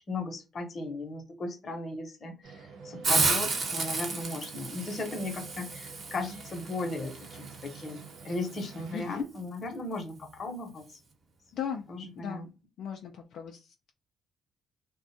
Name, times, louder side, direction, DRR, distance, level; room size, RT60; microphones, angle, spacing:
voice 1, 0.1-11.0 11.9-12.5, left 2 dB, 45° left, 5 dB, 0.8 m, -37 dB
sound 1, 2.4-9.2, right 5 dB, 80° right, 0.7 m, -48 dB
Hiss, 3.0-8.7, right 3 dB, 50° right, 0.9 m, -32 dB
voice 2, 8.9-9.3 11.5-11.9 12.2-12.5 12.8-13.9, left 8 dB, 75° left, 3 dB, 0.3 m, -37 dB
2.4 x 2.2 x 2.6 m, 0.28 s
cardioid pair, 90°, 0 cm